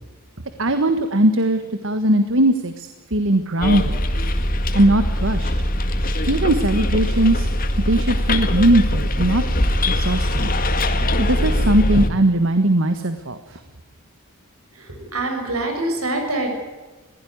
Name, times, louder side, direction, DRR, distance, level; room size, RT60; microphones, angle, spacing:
voice 1, 0.6-4.0 4.7-5.5 6.3-7.5 7.9-9.4 9.9-10.5 11.2-13.6, right 1 dB, 60° right, 9 dB, 1.5 m, -19 dB
Bus, 3.6-12.1, left 1 dB, 40° left, 2.0 m, -21 dB
voice 2, 14.8-16.6, right 2 dB, 75° right, 4 dB, 7.0 m, -25 dB
22.0 x 16.5 x 9.5 m, 1.3 s
head